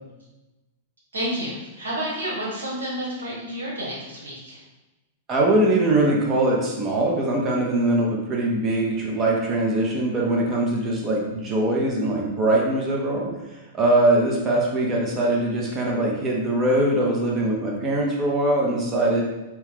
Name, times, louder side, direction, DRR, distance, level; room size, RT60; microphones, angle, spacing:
voice 1, 1.1-4.6, equal, 85° right, -5 dB, 1.3 m, -30 dB
voice 2, 5.3-13.3 13.7-19.2, right 1 dB, 30° right, -2 dB, 0.8 m, -22 dB
3.0 x 2.2 x 3.5 m, 1.0 s
hypercardioid pair, 105°, 0 cm